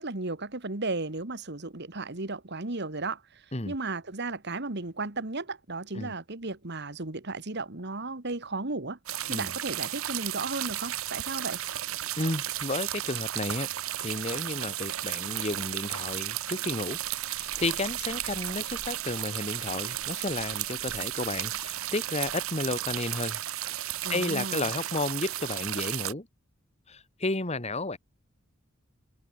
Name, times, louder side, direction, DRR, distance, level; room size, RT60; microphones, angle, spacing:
voice 1, 0.0-3.2 3.7-9.0 9.3-11.6 24.0-24.7, right 3 dB, 55° right, 2.0 m, -34 dB
sound 1, 9.1-26.1, right 13 dB, 80° right, 0.9 m, -34 dB
voice 2, 12.2-13.7 14.0-17.0 17.3-23.4 23.8-26.3 26.9-28.0, left 2 dB, 30° left, 2.7 m, -32 dB
head